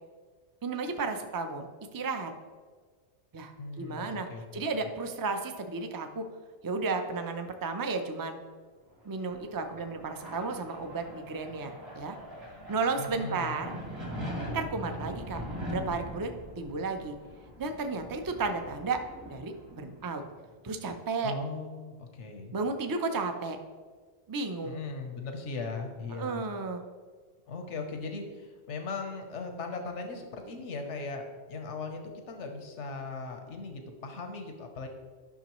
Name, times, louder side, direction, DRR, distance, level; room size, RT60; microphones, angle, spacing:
voice 1, 0.6-1.7 1.9-2.3 3.3-4.3 4.5-6.2 6.6-8.4 9.0-12.2 12.7-13.7 14.5-17.2 17.6-19.0 19.3-20.2 20.6-21.3 22.5-23.6 24.3-24.8 26.1-26.8, right 4 dB, 30° right, 6 dB, 0.4 m, -33 dB
voice 2, 3.6-4.6 13.0-13.6 21.2-22.5 24.6-26.4 27.5-31.2 31.5-32.0 32.3-34.9, left 3 dB, 90° left, 4 dB, 1.2 m, -38 dB
sound 1, 9.0-20.3, equal, 65° right, 2.1 m, -42 dB
10.5 x 6.1 x 3.0 m, 1.5 s
omnidirectional pair, 1.2 m